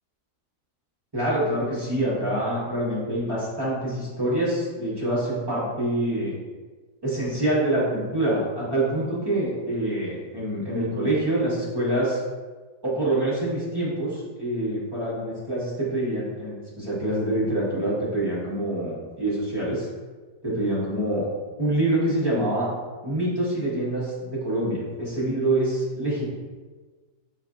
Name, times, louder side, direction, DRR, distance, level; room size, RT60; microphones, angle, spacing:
voice 1, 1.1-6.4 7.0-12.2 12.8-19.9 20.4-21.3 21.6-22.7 23.0-26.2, right 1 dB, 25° right, -8 dB, 0.5 m, -26 dB
3.7 x 3.2 x 2.4 m, 1.4 s
omnidirectional pair, 1.8 m